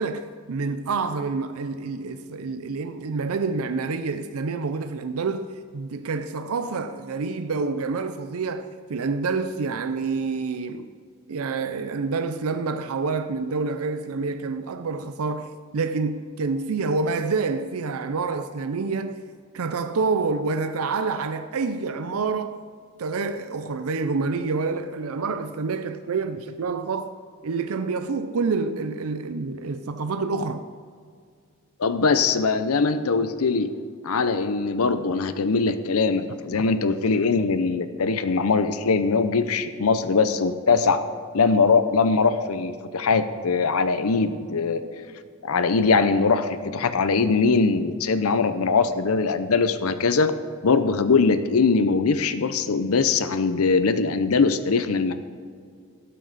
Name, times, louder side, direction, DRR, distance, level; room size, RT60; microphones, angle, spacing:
voice 1, 0.0-10.9 11.3-19.2 19.5-22.6 23.0-27.1 27.4-30.7, right 4 dB, 85° right, 0.5 m, -27 dB
voice 2, 31.8-33.7 34.0-41.0 41.3-44.8 45.4-50.3 50.6-55.1, left 4 dB, 90° left, 0.7 m, -21 dB
17.0 x 7.7 x 4.1 m
head